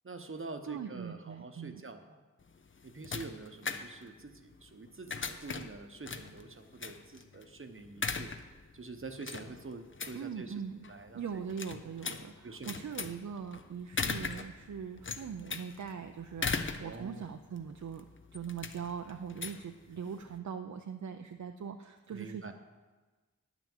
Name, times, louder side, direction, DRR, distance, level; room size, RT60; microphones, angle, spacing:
voice 1, 0.0-2.2 2.8-8.3 8.7-11.4 12.4-12.8 14.0-14.1 16.8-17.3 22.1-22.5, right 3 dB, 40° right, 7 dB, 0.9 m, -46 dB
voice 2, 0.6-1.8 10.1-10.8 11.1-18.1 18.3-22.5, right 7 dB, 60° right, 6 dB, 0.6 m, -41 dB
sound 1, 2.4-20.4, left 4 dB, 40° left, 0.7 m, -40 dB
9.9 x 6.0 x 7.2 m, 1.3 s
cardioid pair, 45°, 32 cm